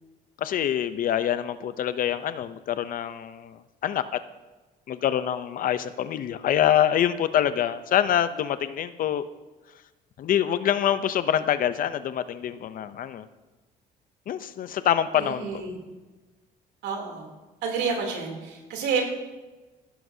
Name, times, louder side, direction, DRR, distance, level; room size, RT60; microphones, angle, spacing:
voice 1, 0.4-4.0 4.9-9.3 10.2-13.3 14.3-15.6, left 10 dB, 55° left, 13 dB, 0.6 m, -25 dB
voice 2, 15.2-15.8 16.8-17.3 17.6-19.1, right 5 dB, 80° right, 1 dB, 3.0 m, -29 dB
16.0 x 12.0 x 2.7 m, 1.2 s
cardioid pair, 110°, 17 cm